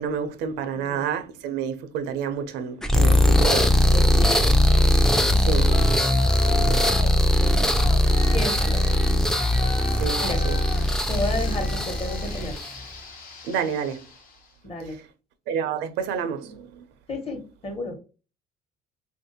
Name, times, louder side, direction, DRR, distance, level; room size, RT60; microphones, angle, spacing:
voice 1, 0.0-3.7 5.4-5.7 10.0-10.6 13.4-14.0 14.9-15.0 15.5-16.8, right 7 dB, 90° right, 0.5 m, -29 dB
sound 1, 2.8-12.8, left 1 dB, 5° left, 0.3 m, -20 dB
voice 2, 3.9-4.5 6.6-6.8 7.4-7.9 8.3-9.2 10.2-10.4 11.1-12.6 14.6-15.0 17.1-18.0, left 1 dB, 35° left, 1.0 m, -32 dB
Yell, 5.6-7.2 7.7-14.4, left 5 dB, 55° left, 0.8 m, -37 dB
3.3 x 2.5 x 2.7 m
cardioid pair, 110°, 17 cm